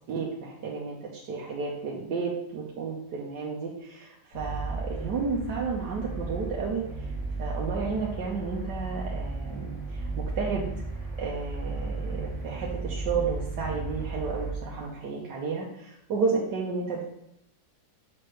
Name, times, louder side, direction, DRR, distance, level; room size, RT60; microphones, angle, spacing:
voice 1, 0.1-7.1 7.4-10.6 11.2-17.1, right 5 dB, 90° right, -3 dB, 1.5 m, -32 dB
sound 1, 4.3-14.5, right 3 dB, 55° left, 1.9 m, -34 dB
6.1 x 5.8 x 3.2 m, 0.83 s
omnidirectional pair, 1.8 m